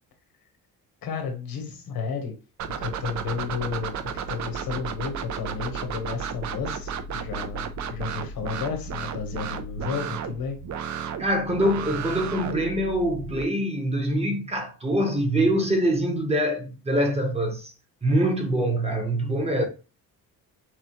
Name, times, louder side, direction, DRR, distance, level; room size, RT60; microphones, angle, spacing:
voice 1, 1.0-2.3 2.8-4.0 4.3-10.6, left 5 dB, 70° left, 1.2 m, -32 dB
sound 1, 2.6-13.4, right 6 dB, 50° right, 0.6 m, -33 dB
voice 2, 11.2-17.7 18.0-19.7, right 1 dB, 15° right, 1.0 m, -24 dB
6.1 x 2.4 x 3.0 m
cardioid pair, 130°, 37 cm